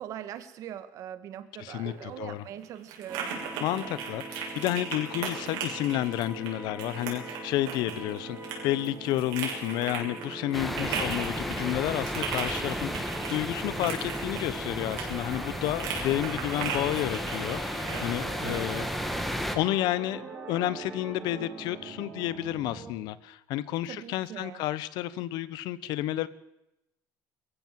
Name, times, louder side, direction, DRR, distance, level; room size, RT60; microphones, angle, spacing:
voice 1, 0.0-3.4 10.7-11.2 18.4-18.8 23.9-24.6, right 10 dB, 45° right, 12 dB, 1.6 m, -41 dB
voice 2, 1.6-2.4 3.6-18.9 19.5-26.3, left 14 dB, 65° left, 17 dB, 1.0 m, -31 dB
sound 1, 1.7-18.8, right 6 dB, 75° right, 6.7 m, -38 dB
sound 2, 3.1-22.9, right 2 dB, 25° right, 4.5 m, -42 dB
sound 3, 10.5-19.6, equal, ahead, 1.6 m, -34 dB
22.5 x 15.0 x 7.6 m, 0.87 s
cardioid pair, 180°, 8 cm